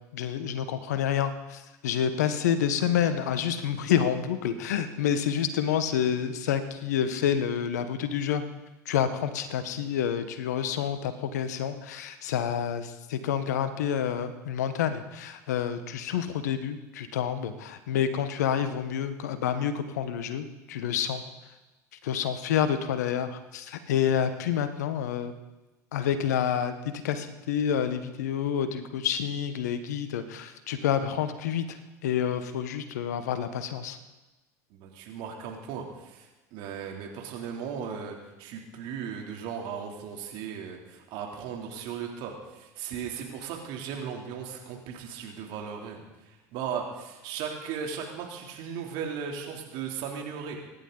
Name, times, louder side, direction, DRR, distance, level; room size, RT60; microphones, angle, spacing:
voice 1, 0.1-8.4 8.8-21.2 22.0-25.3 25.9-34.0, left 9 dB, 80° left, 10 dB, 1.2 m, -28 dB
voice 2, 34.7-50.6, right 7 dB, 65° right, 1 dB, 3.1 m, -37 dB
25.5 x 11.0 x 4.0 m, 1.1 s
hypercardioid pair, 75°, 9 cm